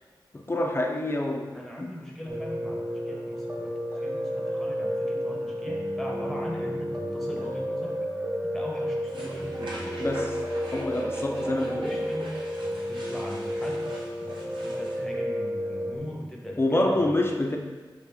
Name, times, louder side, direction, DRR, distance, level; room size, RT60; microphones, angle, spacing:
voice 1, 0.3-2.0 10.0-10.4 10.7-11.9 16.6-17.6, left 1 dB, 30° left, 2 dB, 0.4 m, -27 dB
voice 2, 1.5-8.0 8.4-10.0 11.2-12.3 12.9-13.9 14.2-17.1, equal, 5° left, -1 dB, 0.9 m, -40 dB
Piano, 2.3-16.0, equal, 45° right, 1.1 m, -31 dB
sound 1, 9.1-15.0, right 1 dB, 80° right, 0.8 m, -41 dB
4.8 x 2.9 x 3.5 m, 1.3 s
wide cardioid pair, 60°, 8 cm